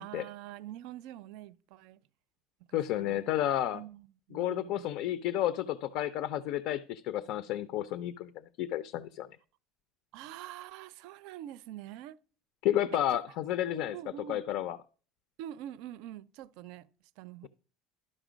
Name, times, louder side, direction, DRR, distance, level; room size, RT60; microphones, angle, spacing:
voice 1, 0.0-2.0 2.7-3.3 3.7-4.9 10.1-12.2 12.9-13.2 13.7-14.4 15.4-16.9 17.2-17.5, right 12 dB, 75° right, 0.4 m, -45 dB
voice 2, 2.7-3.8 4.3-8.3 8.6-9.3 12.6-14.0 14.3-14.8, left 12 dB, 65° left, 0.4 m, -31 dB
12.0 x 5.3 x 5.1 m
cardioid pair, 150°, 0 cm